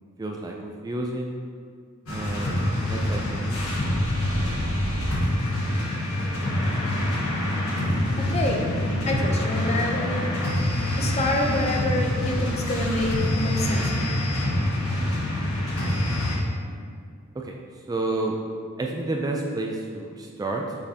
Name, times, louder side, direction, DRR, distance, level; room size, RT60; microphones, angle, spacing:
voice 1, 0.2-1.3 2.1-2.5 2.8-3.7 17.3-17.6 17.9-18.4 18.8-20.8, right 2 dB, 15° right, 0 dB, 0.3 m, -30 dB
sound 1, 2.1-16.4, left 1 dB, 85° left, 1.3 m, -25 dB
voice 2, 8.2-8.6 9.1-10.3 11.0-14.3, left 2 dB, 30° left, 1 dB, 0.6 m, -27 dB
6.2 x 5.5 x 2.8 m, 2.2 s
head